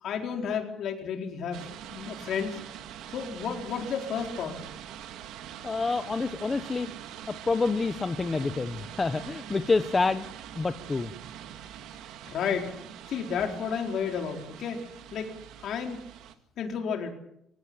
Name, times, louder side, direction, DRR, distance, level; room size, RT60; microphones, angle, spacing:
voice 1, 0.0-1.6 1.9-2.6 3.1-4.6 12.2-12.7 13.1-15.3 15.6-16.0 16.6-17.1, left 7 dB, 50° left, 3 dB, 4.3 m, -32 dB
sound 1, 1.5-16.3, right 10 dB, 75° right, 2.1 m, -44 dB
voice 2, 5.6-6.9 7.3-10.3 10.5-11.1, left 3 dB, 15° left, 9 dB, 0.8 m, -27 dB
25.0 x 17.5 x 8.7 m, 0.75 s
cardioid pair, 180°, 0 cm